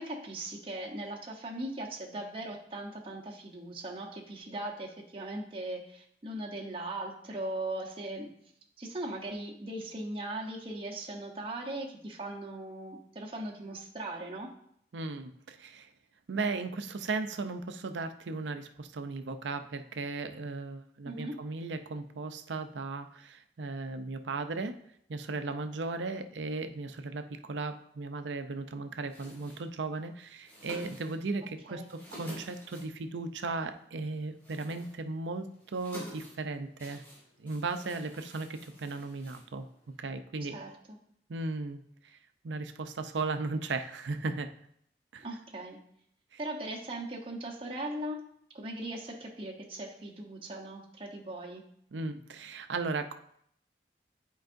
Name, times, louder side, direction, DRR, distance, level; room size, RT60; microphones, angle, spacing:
voice 1, 0.0-8.3 8.8-14.5 21.0-21.4 31.7-31.9 40.4-41.0 45.2-45.8 46.4-48.2 48.5-51.6, right 1 dB, 30° right, -1 dB, 1.0 m, -39 dB
voice 2, 14.9-15.9 16.3-24.7 25.1-37.0 37.4-39.7 40.0-40.6 41.3-42.2 42.4-44.5 45.1-45.3 51.9-53.1, right 3 dB, 90° right, 8 dB, 0.6 m, -36 dB
sound 1, 29.0-40.0, right 1 dB, 10° left, 2.5 m, -51 dB
10.0 x 4.7 x 2.6 m, 0.69 s
head